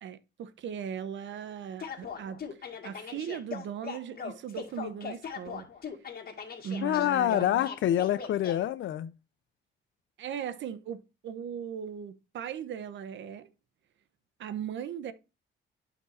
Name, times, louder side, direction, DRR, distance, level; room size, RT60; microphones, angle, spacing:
voice 1, 0.0-5.7 6.6-7.7 10.2-13.5 14.4-15.1, right 8 dB, 70° right, 0.9 m, -38 dB
sound 1, 1.8-8.6, left 6 dB, 50° left, 2.0 m, -39 dB
voice 2, 6.8-9.1, left 12 dB, 75° left, 0.7 m, -26 dB
12.0 x 4.5 x 2.6 m
cardioid pair, 90°, 20 cm